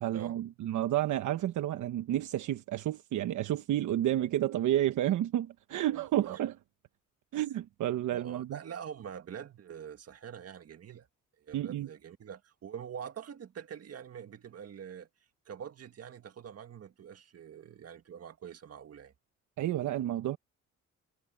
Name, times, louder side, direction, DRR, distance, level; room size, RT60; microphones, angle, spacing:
voice 1, 0.0-6.5 7.3-8.6 11.5-11.9 19.6-20.4, right 13 dB, 75° right, 1.1 m, -30 dB
voice 2, 5.9-6.4 8.1-11.1 11.4-15.1 15.5-19.1, right 8 dB, 55° right, 2.0 m, -45 dB
cardioid pair, 90°, 30 cm